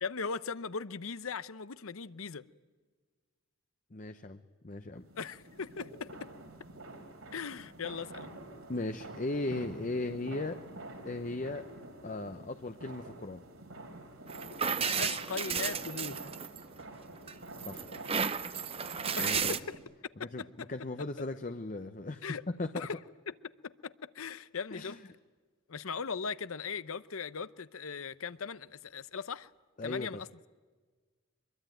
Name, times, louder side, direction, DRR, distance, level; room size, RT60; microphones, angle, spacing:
voice 1, 0.0-2.4 5.2-6.2 7.3-8.3 14.8-16.3 19.2-19.8 20.2-20.7 22.2-22.4 22.7-23.0 23.3-23.4 23.6-24.9 25.7-29.5 29.8-30.3, left 5 dB, 75° left, 0.8 m, -39 dB
voice 2, 3.9-4.4 4.6-5.1 8.7-10.6 11.0-11.6 12.0-13.4 17.7-17.9 19.2-19.5 20.2-20.4 20.7-22.2 22.6-22.9 24.7-25.0 29.8-30.2, left 2 dB, 35° left, 0.7 m, -37 dB
sound 1, 5.0-19.8, right 1 dB, 85° right, 4.4 m, -48 dB
sound 2, 14.3-16.8 17.3-19.6, right 6 dB, 25° right, 0.7 m, -33 dB
24.5 x 23.0 x 9.1 m
head